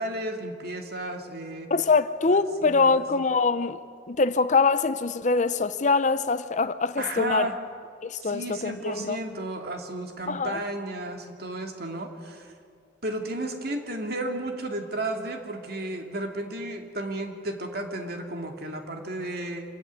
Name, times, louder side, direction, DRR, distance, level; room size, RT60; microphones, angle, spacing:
voice 1, 0.0-1.7 2.6-3.0 7.0-7.5 8.2-12.5 13.0-19.6, right 1 dB, 55° right, 2.6 m, -33 dB
voice 2, 1.7-3.8 4.1-7.5 8.0-9.2 10.3-10.6, left 4 dB, 40° left, 0.6 m, -24 dB
26.0 x 14.5 x 9.5 m
head